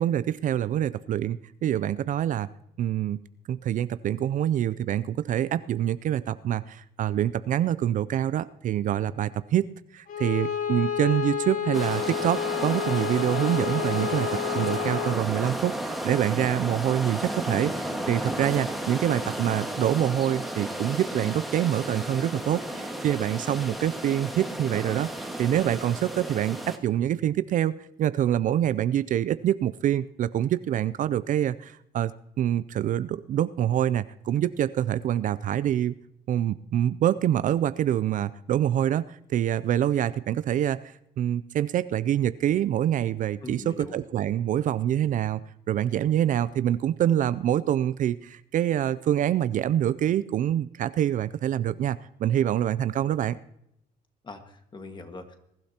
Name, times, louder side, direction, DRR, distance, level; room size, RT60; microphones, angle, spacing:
voice 1, 0.0-2.5 2.8-3.2 3.5-9.7 9.9-32.1 32.4-35.9 36.3-45.4 45.7-53.4, right 11 dB, 50° right, 16 dB, 0.4 m, -26 dB
Bowed string instrument, 10.1-15.3, left 8 dB, 55° left, 1.6 m, -30 dB
sound 1, 11.7-26.8, right 1 dB, ahead, 1.6 m, -33 dB
voice 2, 43.4-44.0 54.2-55.4, left 2 dB, 25° left, 6 dB, 1.7 m, -42 dB
21.5 x 12.0 x 2.9 m, 0.79 s
cardioid pair, 110°, 17 cm